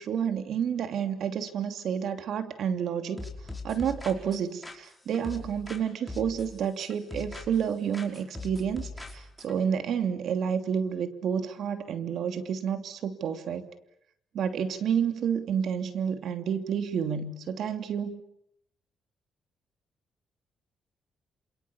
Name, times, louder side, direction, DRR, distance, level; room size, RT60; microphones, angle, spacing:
voice 1, 0.0-3.2 3.6-13.7 14.3-18.2, right 7 dB, 70° right, 8 dB, 2.8 m, -30 dB
sound 1, 3.2-5.8 6.1-7.7 7.9-9.5, left 3 dB, 10° left, 5.6 m, -41 dB
28.5 x 27.5 x 7.2 m, 0.75 s
cardioid pair, 90°, 0 cm